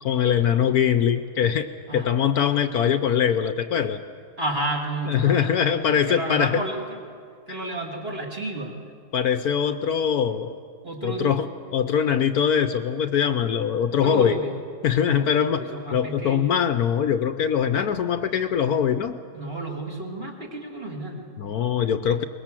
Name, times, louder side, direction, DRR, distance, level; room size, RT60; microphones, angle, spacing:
voice 1, 0.0-4.0 5.1-6.6 7.5-7.6 9.1-10.6 11.0-14.4 14.8-15.6 15.9-19.2 21.4-22.2, left 8 dB, 65° left, 10 dB, 1.1 m, -22 dB
voice 2, 4.4-7.0 7.5-8.7 10.8-11.3 13.9-14.6 15.0-16.6 19.3-21.3, right 1 dB, 35° right, 1 dB, 2.5 m, -31 dB
23.0 x 20.0 x 7.6 m, 2.3 s
omnidirectional pair, 1.9 m